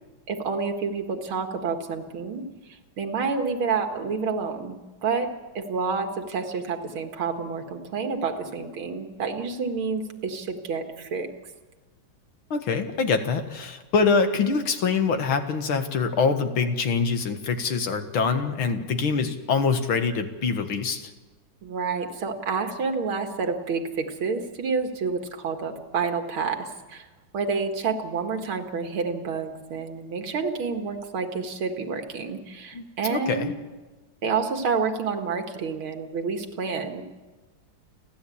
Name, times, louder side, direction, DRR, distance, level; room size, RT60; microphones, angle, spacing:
voice 1, 0.3-2.4 2.7-5.3 5.5-11.3 21.6-27.1 27.3-33.6 34.2-37.0, right 5 dB, 80° right, 5 dB, 2.7 m, -29 dB
voice 2, 12.5-21.1 32.7-32.8 33.1-33.5, left 5 dB, 80° left, 7 dB, 2.4 m, -24 dB
30.0 x 12.0 x 8.6 m, 1.2 s
omnidirectional pair, 2.3 m